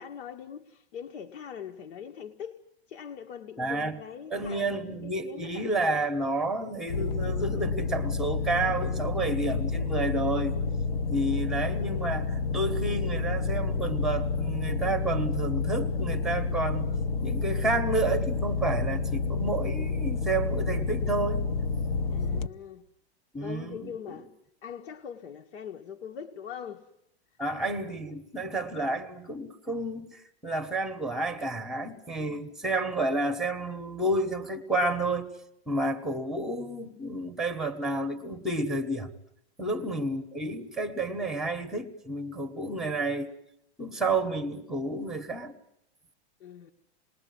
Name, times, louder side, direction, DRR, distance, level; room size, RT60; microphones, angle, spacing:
voice 1, 0.0-2.6 2.9-6.1 22.1-22.9 23.4-24.3 24.6-26.9 27.6-27.7 32.2-32.4 39.7-40.0 46.4-46.7, left 8 dB, 75° left, 3 dB, 1.6 m, -42 dB
voice 2, 3.6-4.0 4.3-10.6 11.1-16.9 17.2-21.5 23.3-24.2 27.4-35.3 35.7-39.1 39.6-43.3 43.8-45.5, right 2 dB, ahead, 8 dB, 1.1 m, -30 dB
sound 1, 6.9-22.5, left 4 dB, 60° left, 1.0 m, -29 dB
27.5 x 20.5 x 9.4 m, 0.79 s
supercardioid pair, 175°, 33 cm